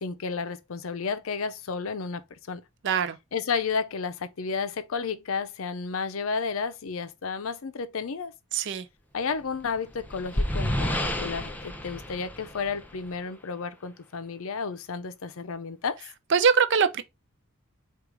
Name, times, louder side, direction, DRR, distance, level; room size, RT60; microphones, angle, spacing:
voice 1, 0.0-2.6 3.3-8.3 9.1-10.9 11.2-16.0, left 5 dB, 70° left, 0.6 m, -32 dB
voice 2, 2.8-3.2 8.5-8.8 16.3-17.0, right 6 dB, 55° right, 0.5 m, -22 dB
sound 1, 9.5-13.2, left 1 dB, 10° left, 0.6 m, -30 dB
4.6 x 2.4 x 4.8 m
head